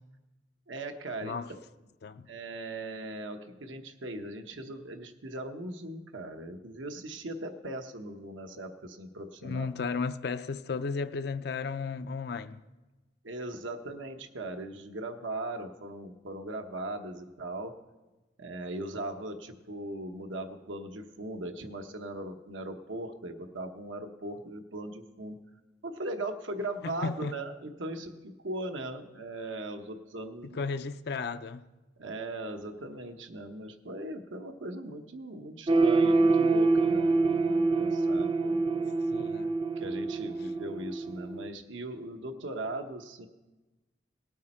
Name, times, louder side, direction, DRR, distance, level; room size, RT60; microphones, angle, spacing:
voice 1, 0.7-1.4 2.3-9.7 13.2-17.7 18.4-25.4 25.8-30.6 32.0-38.9 39.8-43.3, right 1 dB, 85° right, 1.0 m, -39 dB
voice 2, 1.2-1.5 2.0-2.3 9.4-12.6 26.8-27.4 30.4-31.7 39.1-39.6, left 4 dB, 55° left, 0.4 m, -34 dB
sound 1, 35.7-41.5, right 3 dB, 25° right, 0.5 m, -26 dB
18.5 x 8.5 x 4.3 m
head